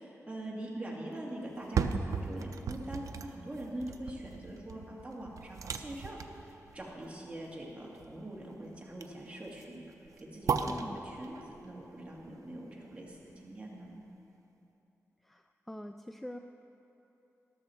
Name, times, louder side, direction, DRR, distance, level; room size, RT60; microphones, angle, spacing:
voice 1, 0.0-9.8 10.2-13.9, right 1 dB, 20° right, -4 dB, 2.4 m, -43 dB
sound 1, 1.5-13.5 13.9-14.0, right 5 dB, 90° right, 0.5 m, -38 dB
voice 2, 10.7-11.0 15.2-16.4, left 1 dB, 5° left, 7 dB, 0.4 m, -44 dB
13.0 x 13.0 x 4.5 m, 3.0 s
wide cardioid pair, 100°, 6 cm